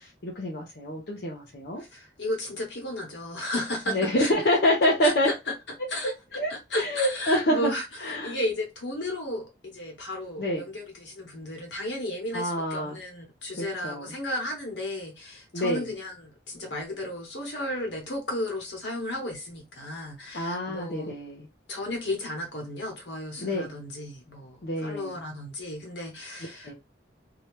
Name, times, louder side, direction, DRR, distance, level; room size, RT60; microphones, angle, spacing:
voice 1, 0.0-1.8 3.9-5.3 6.3-7.7 8.0-8.4 10.4-10.6 12.3-13.0 13.6-14.1 15.5-15.9 20.3-21.5 23.4-23.7 24.6-25.2 26.6-26.7, left 1 dB, 55° left, 0.7 m, -27 dB
voice 2, 1.8-4.3 5.0-5.3 5.9-6.1 6.5-21.2 21.7-26.7, left 1 dB, 75° left, 1.3 m, -34 dB
2.8 x 2.4 x 3.2 m
head